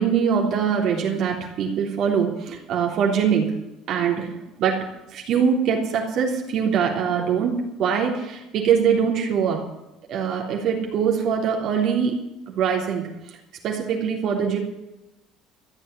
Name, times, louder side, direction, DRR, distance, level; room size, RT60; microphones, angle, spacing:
voice 1, 0.0-3.5 3.9-4.3 4.6-9.7 10.1-12.1 12.5-13.1 13.6-14.6, right 7 dB, 60° right, 1 dB, 3.4 m, -23 dB
14.5 x 7.3 x 9.6 m, 0.95 s
supercardioid pair, 95°, 0 cm